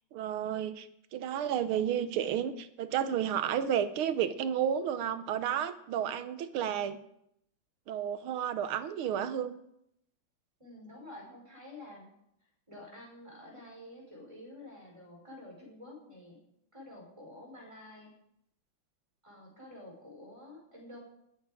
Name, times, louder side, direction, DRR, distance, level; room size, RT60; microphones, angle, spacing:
voice 1, 0.1-0.9 1.1-7.0 7.9-9.6, right 9 dB, 85° right, 12 dB, 1.8 m, -31 dB
voice 2, 10.6-12.1 12.7-16.4 16.7-18.1 19.2-21.0, left 1 dB, 15° right, -1 dB, 5.0 m, -49 dB
19.0 x 8.9 x 5.0 m, 0.76 s
omnidirectional pair, 2.3 m